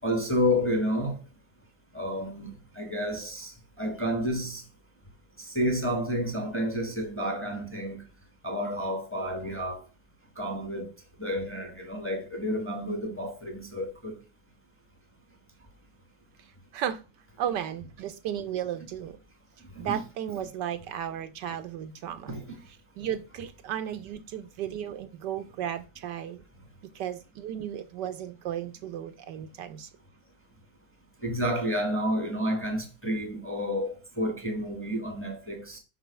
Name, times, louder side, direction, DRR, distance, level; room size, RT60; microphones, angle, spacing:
voice 1, 0.0-1.2 1.9-3.5 3.8-4.6 5.4-8.0 8.4-9.8 10.4-10.9 11.2-14.2 19.7-20.0 22.3-22.6 31.2-35.8, equal, 10° left, 1.1 m, -30 dB
voice 2, 17.4-19.2 19.8-22.4 23.0-26.4 26.9-29.9, right 10 dB, 75° right, 1.2 m, -34 dB
6.1 x 4.8 x 5.7 m
omnidirectional pair, 2.0 m